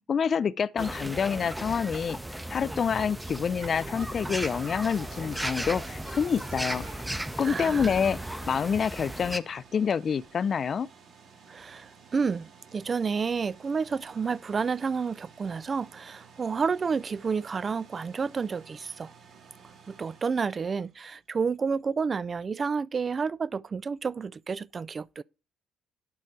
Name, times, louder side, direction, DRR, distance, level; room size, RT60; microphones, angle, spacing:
voice 1, 0.1-6.9 7.4-10.9, left 7 dB, 40° left, 0.4 m, -27 dB
sound 1, 0.8-9.4, right 1 dB, 10° right, 0.7 m, -36 dB
sound 2, 3.3-21.4, right 6 dB, 55° right, 2.0 m, -55 dB
sound 3, 3.4-10.3, right 4 dB, 75° right, 4.6 m, -52 dB
voice 2, 7.4-7.9 11.5-19.1 19.9-25.2, right 5 dB, 35° right, 0.3 m, -30 dB
11.5 x 4.3 x 4.9 m
figure-of-eight pair, 50°, 0 cm